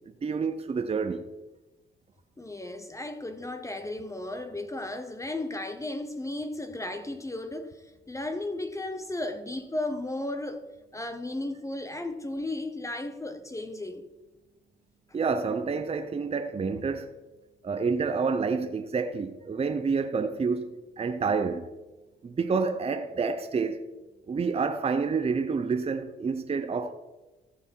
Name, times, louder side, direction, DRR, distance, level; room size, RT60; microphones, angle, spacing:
voice 1, 0.2-1.3 15.1-17.1 17.6-21.7 22.2-23.8 24.3-26.9, right 5 dB, 30° right, 0.7 m, -28 dB
voice 2, 2.4-14.0, left 2 dB, 15° left, 0.9 m, -35 dB
14.5 x 6.1 x 4.6 m
cardioid pair, 90°, 20 cm